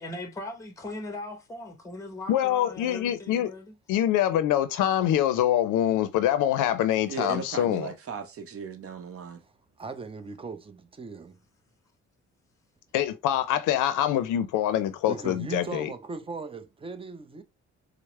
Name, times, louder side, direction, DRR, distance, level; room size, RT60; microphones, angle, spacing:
voice 1, 0.0-3.7, left 2 dB, 10° left, 0.9 m, -39 dB
voice 2, 2.3-3.5 3.9-7.9 12.9-15.9, left 11 dB, 85° left, 0.5 m, -25 dB
voice 3, 7.1-9.4, right 6 dB, 50° right, 0.8 m, -37 dB
voice 4, 9.8-11.4 15.1-17.4, right 4 dB, 20° right, 0.5 m, -38 dB
4.6 x 2.0 x 3.0 m
cardioid pair, 90°, 30 cm